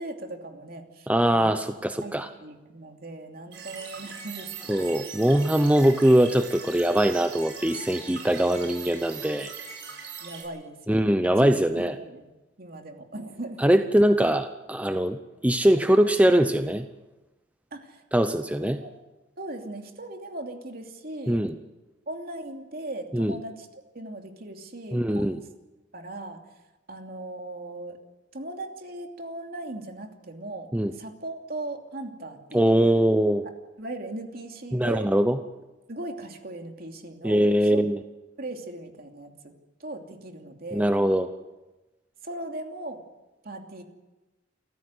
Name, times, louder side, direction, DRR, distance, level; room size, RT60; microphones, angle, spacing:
voice 1, 0.0-1.6 2.0-4.9 10.2-11.0 11.3-12.2 12.6-13.7 17.7-18.0 18.3-18.9 19.4-21.4 22.1-23.7 23.9-25.2 25.9-26.4 26.9-28.0 28.3-33.1 33.8-35.1 35.9-37.5 37.7-37.9 38.4-39.5 39.8-40.9 42.2-43.0 43.4-43.8, right 2 dB, 55° right, 4 dB, 2.8 m, -38 dB
voice 2, 1.1-2.3 4.7-9.5 10.9-11.9 13.6-16.9 18.1-18.8 21.3-21.6 23.1-23.4 24.9-25.4 30.7-30.9 32.5-33.4 34.7-35.4 37.2-38.0 40.7-41.3, right 1 dB, 10° right, 8 dB, 0.7 m, -22 dB
sound 1, 3.5-10.4, right 6 dB, 75° right, 8.0 m, -40 dB
28.5 x 15.0 x 8.1 m, 1.1 s
head